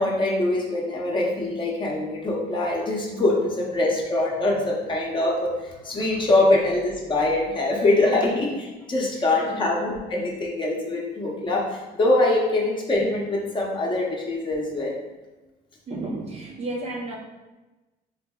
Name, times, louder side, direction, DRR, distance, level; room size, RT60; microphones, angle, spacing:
voice 1, 0.0-15.0, left 2 dB, 30° left, -2 dB, 0.7 m, -23 dB
voice 2, 9.1-9.5 15.9-17.2, right 2 dB, 40° right, -1 dB, 0.5 m, -33 dB
3.9 x 2.6 x 2.2 m, 1.1 s
cardioid pair, 110°, 17 cm